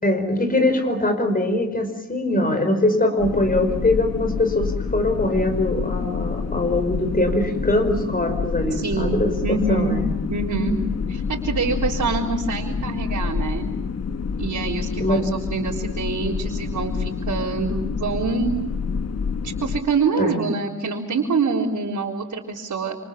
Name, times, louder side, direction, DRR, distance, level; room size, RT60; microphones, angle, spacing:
voice 1, 0.0-10.1 15.0-15.2 20.2-20.4, left 2 dB, 30° left, 7 dB, 5.1 m, -22 dB
sound 1, 3.2-19.8, left 5 dB, 55° left, 1.2 m, -27 dB
voice 2, 8.7-10.0 10.3-10.8 11.1-13.7 14.4-18.5 19.4-23.0, right 4 dB, 80° right, -4 dB, 3.8 m, -25 dB
28.0 x 28.0 x 7.3 m, 0.98 s
wide cardioid pair, 120°, 30 cm